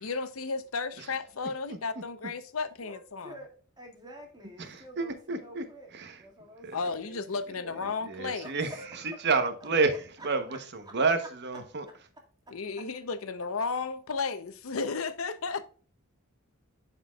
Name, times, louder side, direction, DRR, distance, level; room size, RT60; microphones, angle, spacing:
voice 1, 0.0-3.4 6.7-8.5 12.5-15.6, left 4 dB, 75° left, 0.7 m, -33 dB
voice 2, 2.8-3.5 3.8-7.9 8.3-9.3 9.6-9.7 10.2-11.0 11.9-12.5, equal, 20° right, 2.0 m, -49 dB
voice 3, 4.6-5.6 5.9-6.1 6.6-6.8 8.1-8.7 9.2-9.9 10.2-10.4 10.7-11.8, right 4 dB, 55° right, 1.0 m, -29 dB
11.0 x 4.3 x 2.3 m
head